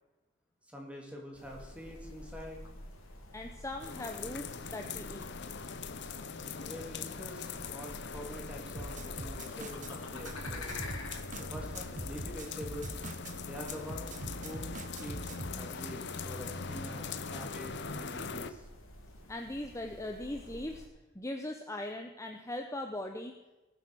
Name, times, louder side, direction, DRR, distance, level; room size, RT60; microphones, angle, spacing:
voice 1, 0.7-2.6 6.6-10.8 11.4-13.0 13.4-18.6, left 1 dB, 5° right, 0 dB, 2.8 m, -46 dB
sound 1, 1.3-20.9, left 1 dB, 85° left, 2.9 m, -50 dB
voice 2, 3.3-5.3 19.3-20.8 21.1-23.3, left 1 dB, 15° left, 4 dB, 0.8 m, -40 dB
sound 2, 3.8-18.5, left 5 dB, 55° left, 0.8 m, -41 dB
sound 3, 8.8-9.9 10.3-13.4 13.7-15.6, right 2 dB, 40° right, 0.9 m, -43 dB
18.5 x 8.0 x 6.3 m, 1.1 s
head